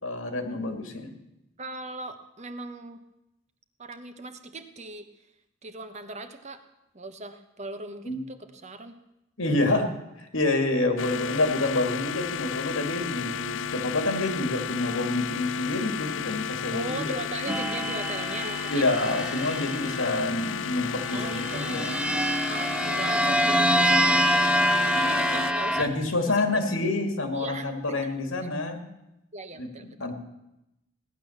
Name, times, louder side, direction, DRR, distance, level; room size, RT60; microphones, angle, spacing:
voice 1, 0.0-1.1 8.1-8.2 9.4-9.9 10.3-17.1 18.7-22.0 25.8-28.8 29.6-30.1, left 2 dB, 80° left, 5 dB, 2.4 m, -27 dB
voice 2, 1.6-3.0 3.8-5.1 5.6-6.6 6.9-9.0 9.6-9.8 16.7-18.9 21.1-21.8 22.5-26.9 27.3-28.0 28.4-28.5 29.3-30.0, right 2 dB, 35° right, 8 dB, 1.1 m, -39 dB
sound 1, 11.0-25.5, left 7 dB, 65° left, 0.4 m, -33 dB
sound 2, 17.5-20.2 21.0-25.8, equal, 5° right, 0.6 m, -25 dB
17.0 x 11.0 x 7.2 m, 0.92 s
head